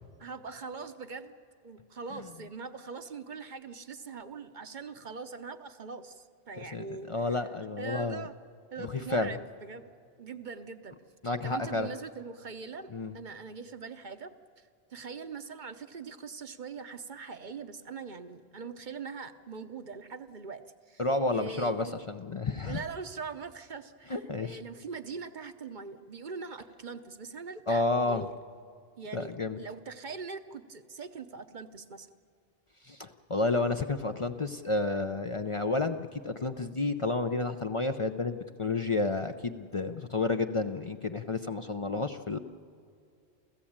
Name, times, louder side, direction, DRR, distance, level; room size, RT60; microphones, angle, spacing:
voice 1, 0.2-1.3 1.6-7.1 7.8-8.3 8.7-9.9 10.2-11.0 11.4-12.9 13.1-14.3 14.9-20.6 20.9-21.0 21.3-21.9 22.7-28.3 29.0-32.1, right 5 dB, 50° right, 9 dB, 0.9 m, -42 dB
voice 2, 6.6-8.2 8.8-9.3 11.2-11.9 12.9-13.1 21.0-22.8 24.1-24.6 27.7-28.3 29.1-29.6 32.8-42.4, left 3 dB, 35° left, 7 dB, 0.6 m, -31 dB
29.0 x 14.5 x 8.7 m, 2.4 s
omnidirectional pair, 1.0 m